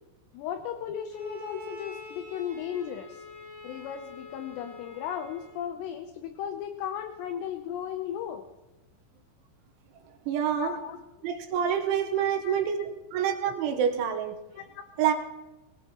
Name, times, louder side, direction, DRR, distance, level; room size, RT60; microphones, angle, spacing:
voice 1, 0.3-3.2 3.6-8.4 10.5-11.0 12.2-12.9 14.5-14.8, left 9 dB, 80° left, 7 dB, 2.7 m, -36 dB
Bowed string instrument, 1.1-5.7, left 2 dB, 25° left, 8.0 m, -46 dB
voice 2, 10.3-10.8 11.2-12.8 13.1-14.4 15.0-15.1, right 9 dB, 80° right, 5 dB, 3.5 m, -27 dB
22.5 x 19.0 x 3.0 m, 1.1 s
omnidirectional pair, 5.6 m